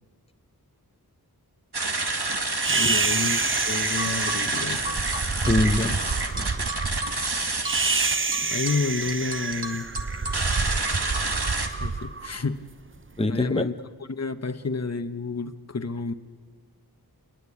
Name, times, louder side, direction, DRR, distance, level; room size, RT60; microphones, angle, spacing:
sound 1, 1.7-11.7, right 3 dB, 85° right, 2.0 m, -28 dB
sound 2, 2.6-13.0, right 4 dB, 30° right, 0.7 m, -28 dB
voice 1, 2.7-4.8 8.4-9.9 11.8-12.6 13.3-13.7 14.1-16.1, left 3 dB, 40° left, 9 dB, 1.0 m, -30 dB
voice 2, 5.5-6.0 6.4-6.5 13.2-13.7, left 2 dB, 15° left, 9 dB, 0.8 m, -24 dB
26.0 x 20.5 x 8.4 m, 1.5 s
wide cardioid pair, 40°, 38 cm